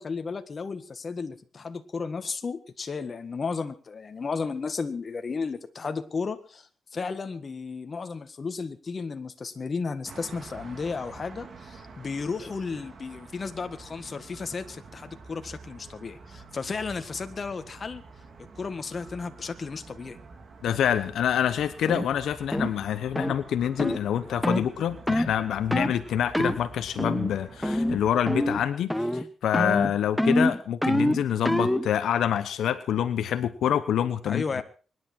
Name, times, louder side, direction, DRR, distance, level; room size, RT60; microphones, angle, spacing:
voice 1, 0.0-18.0 18.6-20.2 34.3-34.6, left 4 dB, 40° left, 9 dB, 1.7 m, -34 dB
sound 1, 10.1-28.7, right 4 dB, 50° right, 3.3 m, -47 dB
voice 2, 20.6-34.6, left 9 dB, 85° left, 11 dB, 0.9 m, -26 dB
sound 2, 21.9-22.1 22.5-22.7 23.1-23.4 23.8-24.0 24.4-24.7 25.1-25.3 25.7-26.0 26.3-26.6 27.0-27.3 27.6-28.0 28.3-28.6 28.9-29.2 29.5-31.9, left 1 dB, 5° left, 1.0 m, -25 dB
24.5 x 11.0 x 4.5 m, 0.38 s
cardioid pair, 90°, 0 cm